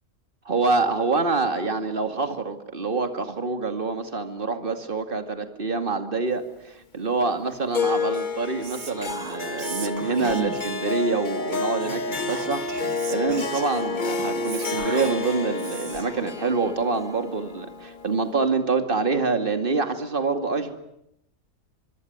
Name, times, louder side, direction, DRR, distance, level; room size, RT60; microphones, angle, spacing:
voice 1, 0.5-12.7 13.1-20.7, right 4 dB, 35° right, 7 dB, 2.5 m, -26 dB
Harp, 7.7-18.3, left 4 dB, 35° left, 1.2 m, -30 dB
Whispering, 8.6-10.9 11.8-16.2, right 7 dB, 85° right, 1.9 m, -38 dB
24.5 x 24.0 x 9.5 m, 0.80 s
omnidirectional pair, 1.5 m